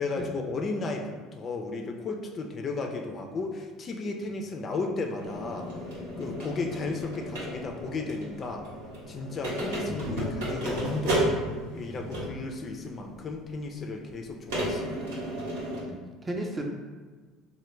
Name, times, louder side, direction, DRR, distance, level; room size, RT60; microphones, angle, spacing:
voice 1, 0.0-5.7 6.2-8.7 9.1-11.2 11.7-15.1, left 3 dB, 40° left, 3 dB, 0.4 m, -34 dB
sound 1, 5.2-12.5 13.3-13.4 14.5-15.8, equal, 85° right, 0.8 m, -33 dB
voice 2, 15.8-16.6, right 1 dB, 20° right, 1 dB, 0.5 m, -35 dB
3.2 x 2.1 x 3.1 m, 1.4 s
supercardioid pair, 85°, 0 cm